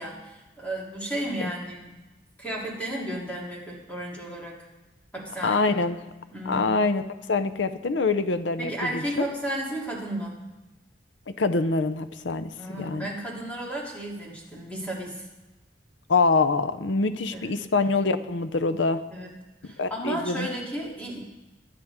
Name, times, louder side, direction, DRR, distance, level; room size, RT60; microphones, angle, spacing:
voice 1, 0.0-1.9 2.4-4.6 5.1-5.6 6.3-6.7 8.6-10.4 12.6-15.2 17.3-17.5 19.1-19.3 19.6-21.4, right 1 dB, 10° left, -4 dB, 3.1 m, -33 dB
voice 2, 5.4-6.0 6.5-7.0 7.3-9.3 11.4-13.1 16.1-19.0 19.8-20.5, left 3 dB, 70° left, 12 dB, 0.6 m, -25 dB
22.5 x 9.4 x 3.6 m, 1.1 s
head